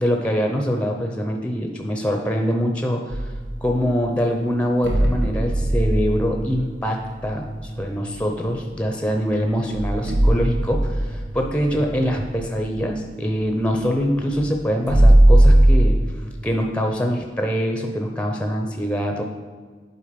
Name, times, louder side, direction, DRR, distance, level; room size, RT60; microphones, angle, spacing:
voice 1, 0.0-3.2 3.6-16.0 16.4-19.2, equal, 5° left, 3 dB, 0.5 m, -24 dB
sound 1, 3.1-4.0 4.8-8.8 9.3-9.4 9.6-16.5, right 1 dB, 90° right, 1.0 m, -20 dB
8.5 x 4.1 x 5.1 m, 1.5 s
head